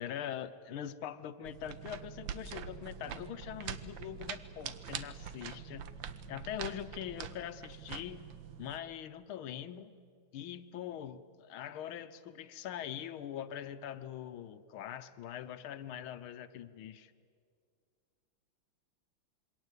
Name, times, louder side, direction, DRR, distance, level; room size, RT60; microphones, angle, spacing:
voice 1, 0.0-5.9 6.3-8.3 8.6-9.9 10.3-17.1, left 10 dB, 85° left, 11 dB, 1.7 m, -43 dB
sound 1, 1.4-8.8, right 8 dB, 70° right, 1.6 m, -44 dB
27.0 x 23.0 x 8.2 m, 2.2 s
omnidirectional pair, 2.2 m